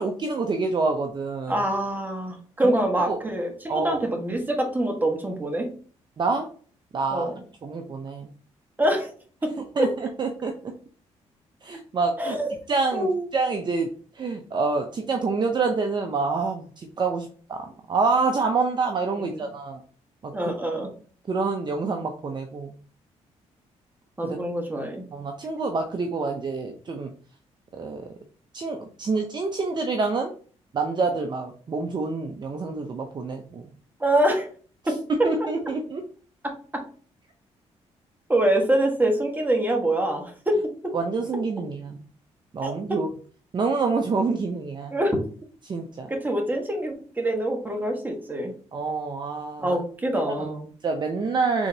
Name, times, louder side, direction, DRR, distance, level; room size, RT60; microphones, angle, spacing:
voice 1, 0.0-1.5 2.6-3.2 3.7-4.0 6.2-6.5 6.9-7.3 7.6-8.3 9.8-10.7 11.6-12.4 12.7-13.1 13.3-13.9 14.2-17.6 17.9-19.8 20.2-20.5 21.3-22.7 24.2-24.4 25.1-27.1 27.7-28.0 28.5-30.3 30.7-33.6 35.2-36.0 40.9-42.0 42.5-43.1 43.5-44.9 45.6-46.1 48.7-49.8 50.4-50.5 50.8-51.7, right 4 dB, 40° right, 3 dB, 0.7 m, -27 dB
voice 2, 1.5-5.7 7.1-7.4 8.8-9.1 9.4-9.5 9.8-9.9 12.2-12.5 12.9-13.3 19.2-19.5 20.3-20.9 24.2-25.0 34.0-34.5 34.9-35.3 36.4-36.8 38.3-40.9 42.6-43.0 44.9-45.2 46.1-48.5 49.6-50.7, right 1 dB, 15° right, 2 dB, 1.5 m, -25 dB
5.0 x 3.8 x 2.8 m, 0.43 s
cardioid pair, 85°, 12 cm